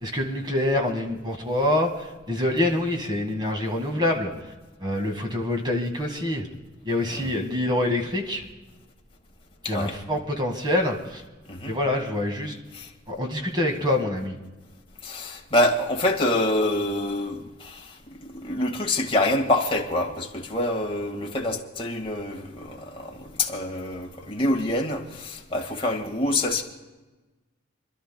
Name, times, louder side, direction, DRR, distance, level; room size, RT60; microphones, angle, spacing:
voice 1, 0.0-4.3 4.8-6.5 6.8-8.4 9.6-11.2 11.7-12.6 13.1-14.4, left 1 dB, 20° right, 2 dB, 1.8 m, -26 dB
voice 2, 9.6-10.0 11.5-11.8 12.7-12.9 15.0-26.6, left 1 dB, 25° left, 1 dB, 1.8 m, -26 dB
29.5 x 12.5 x 2.3 m, 1.2 s
head